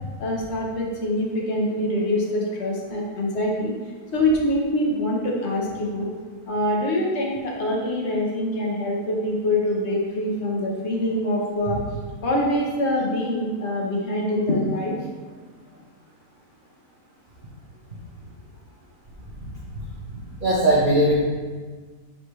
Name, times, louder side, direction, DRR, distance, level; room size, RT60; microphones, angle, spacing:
voice 1, 0.2-3.7 4.1-6.1 6.5-11.8 12.2-14.9, left 1 dB, 50° left, -2 dB, 1.3 m, -24 dB
voice 2, 20.1-21.1, right 1 dB, 35° right, -7 dB, 1.0 m, -20 dB
7.1 x 4.2 x 3.2 m, 1.4 s
omnidirectional pair, 1.6 m